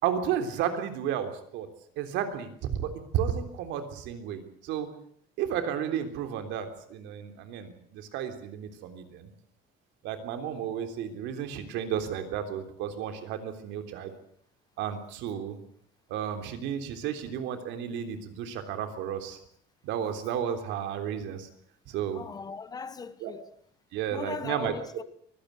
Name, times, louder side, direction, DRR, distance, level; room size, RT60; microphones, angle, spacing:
voice 1, 0.0-1.7 2.0-4.9 5.4-9.3 10.0-14.1 14.8-15.6 16.1-19.4 19.8-21.5 21.9-22.2 23.2-23.3 23.9-24.7, right 9 dB, 75° right, 3.5 m, -32 dB
voice 2, 22.1-23.4 24.1-25.0, left 5 dB, 20° left, 1.0 m, -38 dB
23.5 x 17.0 x 8.1 m
cardioid pair, 180°, 19 cm